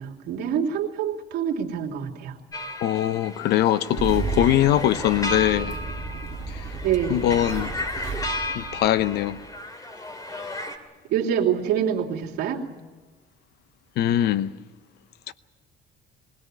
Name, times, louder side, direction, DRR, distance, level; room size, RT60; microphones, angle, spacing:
voice 1, 0.0-2.3 6.8-7.2 11.1-12.6, right 8 dB, 80° right, 2.9 m, -26 dB
sound 1, 2.5-10.8, left 1 dB, 20° left, 2.7 m, -34 dB
voice 2, 2.8-5.8 6.5-6.6 7.1-7.7 8.6-9.4 14.0-14.5 15.3-15.4, left 12 dB, 75° left, 0.9 m, -22 dB
Engine starting, 4.0-9.5, right 4 dB, 40° right, 2.3 m, -33 dB
23.0 x 17.5 x 9.7 m
cardioid pair, 110°, 17 cm